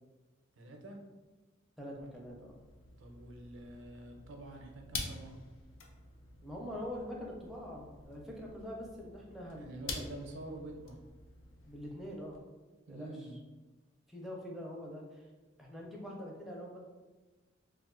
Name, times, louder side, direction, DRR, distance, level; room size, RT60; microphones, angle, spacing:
voice 1, 0.6-1.0 3.0-5.3 9.5-11.0 12.9-13.4, right 2 dB, 65° right, 2 dB, 0.5 m, -47 dB
voice 2, 1.8-2.6 6.4-10.1 11.7-12.4 12.9-13.3 14.1-15.3 15.6-16.8, equal, ahead, -3 dB, 0.5 m, -44 dB
sound 1, 2.0-12.4, left 3 dB, 70° left, 0.4 m, -48 dB
2.4 x 2.3 x 3.6 m, 1.2 s
head